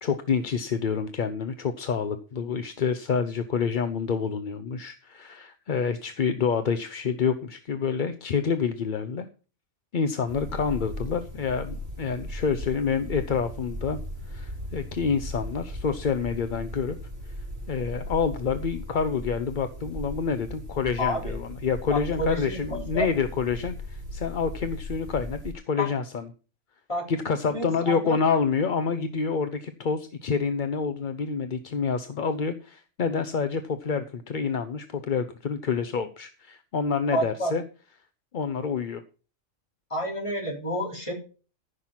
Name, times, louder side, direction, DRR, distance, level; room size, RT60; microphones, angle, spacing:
voice 1, 0.0-9.3 9.9-14.0 14.3-17.0 17.7-26.2 27.1-37.6 38.3-39.0, left 6 dB, 45° left, 10 dB, 0.7 m, -28 dB
sound 1, 10.3-25.5, equal, 90° right, 3.9 m, -37 dB
voice 2, 21.0-21.3 21.9-23.1 25.8-25.9 26.9-27.1 27.5-28.2 37.1-37.5 39.9-41.1, equal, 25° left, 0 dB, 3.8 m, -29 dB
14.5 x 6.0 x 5.7 m, 0.36 s
omnidirectional pair, 1.4 m